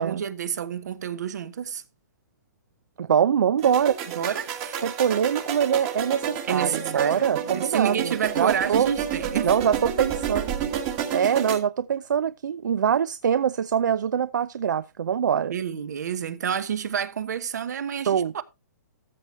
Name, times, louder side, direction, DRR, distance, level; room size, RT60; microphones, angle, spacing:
voice 1, 0.0-1.8 4.1-4.8 6.5-9.5 15.5-18.4, right 8 dB, 70° right, 1.2 m, -29 dB
voice 2, 3.0-4.0 4.8-8.9 9.4-10.5 11.1-15.5 18.1-18.3, right 8 dB, 85° right, 0.6 m, -23 dB
sound 1, 3.6-11.6, right 8 dB, 25° right, 1.3 m, -30 dB
13.5 x 6.6 x 3.2 m
hypercardioid pair, 170°, 10 cm